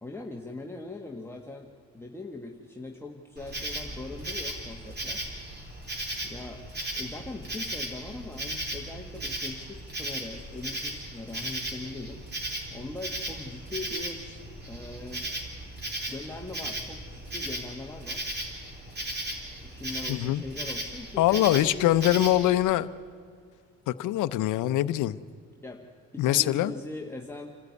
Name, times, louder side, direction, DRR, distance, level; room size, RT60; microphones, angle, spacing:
voice 1, 0.0-5.3 6.2-6.7 6.9-12.2 12.7-15.3 16.1-18.3 19.6-22.2 25.6-27.6, left 2 dB, 10° left, 1 dB, 1.5 m, -41 dB
Insect, 3.4-22.5, right 1 dB, 35° right, 4.0 m, -36 dB
voice 2, 20.1-20.4 21.2-22.9 23.9-25.2 26.2-26.7, left 14 dB, 85° left, 13 dB, 0.7 m, -23 dB
27.5 x 13.5 x 9.7 m, 2.2 s
cardioid pair, 90°, 30 cm